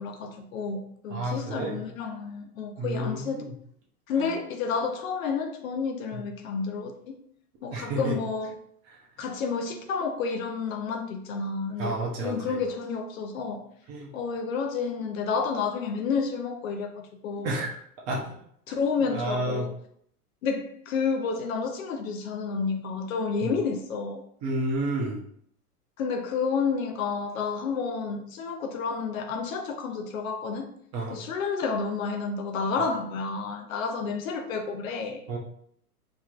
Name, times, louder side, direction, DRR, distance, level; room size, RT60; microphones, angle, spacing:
voice 1, 0.0-3.4 4.1-7.2 7.6-8.5 9.2-13.6 14.1-17.5 18.7-19.7 20.4-24.2 26.0-30.7 31.1-35.2, left 5 dB, 60° left, 0.7 m, -30 dB
voice 2, 1.1-1.8 2.8-3.5 4.2-4.3 6.1-6.2 7.7-8.2 8.8-9.0 11.8-12.6 13.9-14.1 17.4-17.7 18.1-18.3 19.1-19.7 23.4-23.5 24.4-25.2 30.9-31.2 35.3-35.4, right 2 dB, 35° right, 0.9 m, -30 dB
4.4 x 3.0 x 2.4 m
hypercardioid pair, 115°, 46 cm